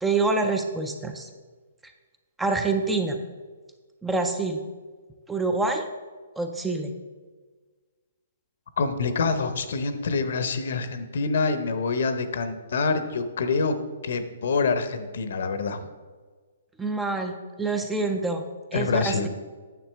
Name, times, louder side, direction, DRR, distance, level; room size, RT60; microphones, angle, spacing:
voice 1, 0.0-1.3 1.8-1.9 2.4-3.2 4.0-4.6 5.3-5.9 6.4-6.9 16.8-18.4 18.7-19.3, right 3 dB, 5° right, 5 dB, 0.4 m, -26 dB
voice 2, 8.8-13.8 14.0-15.9 18.7-19.3, left 4 dB, 60° left, 10 dB, 0.8 m, -26 dB
9.3 x 7.2 x 3.4 m, 1.4 s
hypercardioid pair, 170°, 0 cm